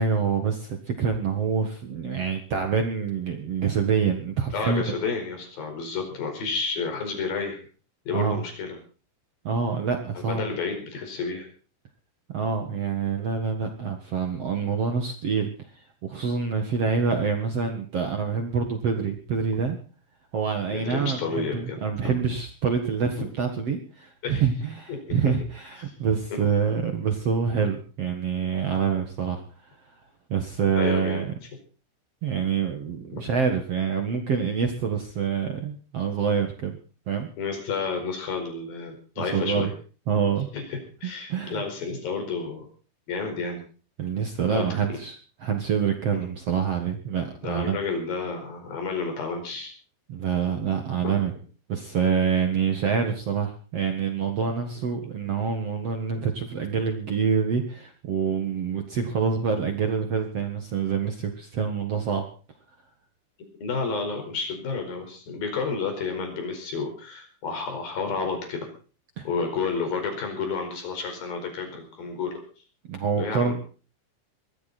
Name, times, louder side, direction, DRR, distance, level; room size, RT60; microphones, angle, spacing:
voice 1, 0.0-4.8 8.1-8.4 9.4-10.5 12.3-19.8 20.3-29.4 30.3-31.3 32.2-36.8 37.1-37.3 39.2-39.7 40.1-40.5 41.3-41.6 44.0-45.2 45.4-47.8 50.1-51.3 51.7-62.2 69.2-69.3 72.9-73.5, right 6 dB, 60° right, 5 dB, 1.6 m, -26 dB
voice 2, 4.5-7.6 8.1-8.8 10.1-11.5 20.7-21.8 22.0-22.2 24.2-24.5 24.9-25.0 30.8-31.2 33.1-33.2 37.4-39.7 40.5-42.7 43.1-43.6 44.5-45.0 46.1-46.2 47.4-49.7 51.0-51.1 63.6-68.7 69.2-72.4 73.2-73.5, left 4 dB, 50° left, 5 dB, 6.3 m, -30 dB
21.5 x 14.0 x 4.3 m, 0.39 s
omnidirectional pair, 5.3 m